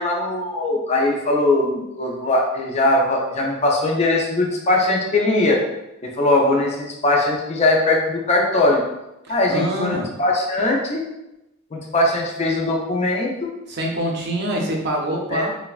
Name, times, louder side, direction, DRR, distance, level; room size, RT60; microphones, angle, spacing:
voice 1, 0.0-5.6 6.0-8.8 9.3-11.0 11.7-13.5 15.3-15.5, left 2 dB, 30° left, 0 dB, 0.4 m, -20 dB
voice 2, 9.3-10.1 13.7-15.5, equal, 50° right, 0 dB, 0.5 m, -25 dB
3.1 x 2.1 x 2.3 m, 0.94 s
head